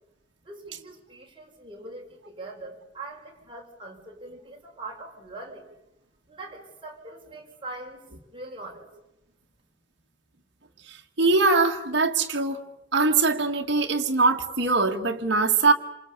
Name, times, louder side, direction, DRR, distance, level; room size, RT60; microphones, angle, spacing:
voice 1, 0.5-5.7 6.3-8.9, right 2 dB, 25° right, 0 dB, 5.6 m, -42 dB
voice 2, 11.2-12.6 12.9-15.7, right 3 dB, 65° right, 1 dB, 2.1 m, -22 dB
28.0 x 27.0 x 6.9 m, 0.90 s
head